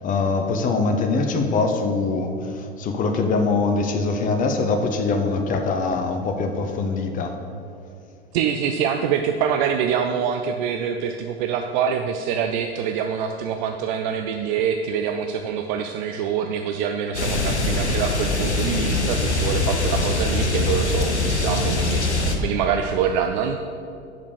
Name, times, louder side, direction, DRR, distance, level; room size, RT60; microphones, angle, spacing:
voice 1, 0.0-7.4, left 3 dB, 25° left, 4 dB, 0.8 m, -23 dB
voice 2, 8.3-23.6, right 7 dB, 45° right, 5 dB, 0.5 m, -25 dB
sound 1, 17.1-22.4, left 2 dB, 90° left, 0.9 m, -22 dB
6.8 x 5.1 x 6.7 m, 2.5 s
figure-of-eight pair, 85°, 33 cm